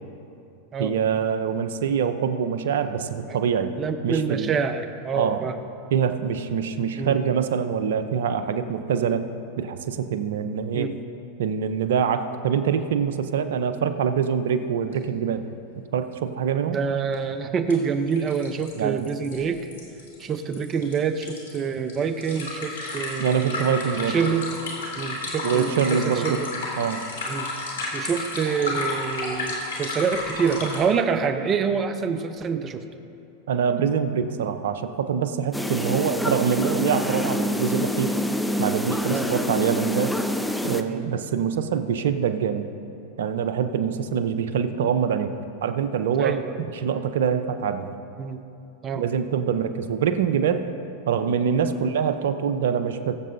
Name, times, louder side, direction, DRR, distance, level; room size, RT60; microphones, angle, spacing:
voice 1, 0.8-3.7 4.0-4.5 5.1-5.5 5.9-9.3 9.6-10.9 11.4-15.4 15.9-16.8 18.7-19.1 23.2-24.2 25.4-26.4 26.8-27.1 33.5-38.1 38.6-40.1 40.6-42.7 43.2-45.3 45.6-46.4 46.7-47.9 48.9-50.6 51.1-53.2, right 7 dB, 70° right, 10 dB, 0.7 m, -24 dB
voice 2, 3.8-5.5 7.0-7.2 10.7-11.0 16.7-19.6 20.2-23.6 24.1-24.5 25.0-26.5 27.3-27.5 27.9-32.9 35.7-36.0 39.1-39.3 40.9-41.1 46.2-46.6 48.2-48.4 48.8-49.0 51.7-51.8, right 6 dB, 30° right, 9 dB, 0.8 m, -26 dB
sound 1, 14.9-15.0 15.3-15.4 17.1-17.2 17.7-17.8 18.1-30.8, left 2 dB, 75° left, 2.7 m, -32 dB
sound 2, 35.5-40.8, left 1 dB, 5° left, 0.6 m, -26 dB
21.0 x 7.5 x 2.7 m, 2.7 s
hypercardioid pair, 100°, 0 cm